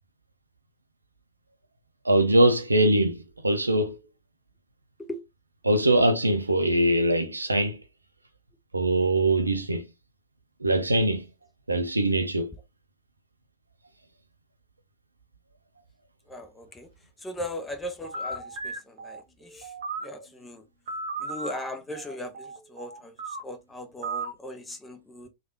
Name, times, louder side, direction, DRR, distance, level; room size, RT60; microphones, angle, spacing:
voice 1, 2.1-4.0 5.6-7.8 8.7-9.9 10.6-11.3 11.7-12.5, right 1 dB, 80° right, 0.4 m, -22 dB
voice 2, 16.3-16.9 17.2-19.7 20.0-20.6 21.2-23.1 23.4-25.3, left 1 dB, 10° left, 0.7 m, -38 dB
sound 1, 18.0-20.3 20.9-23.4 24.0-24.3, right 3 dB, 60° right, 0.9 m, -36 dB
3.2 x 2.3 x 2.6 m
figure-of-eight pair, 90°, 0 cm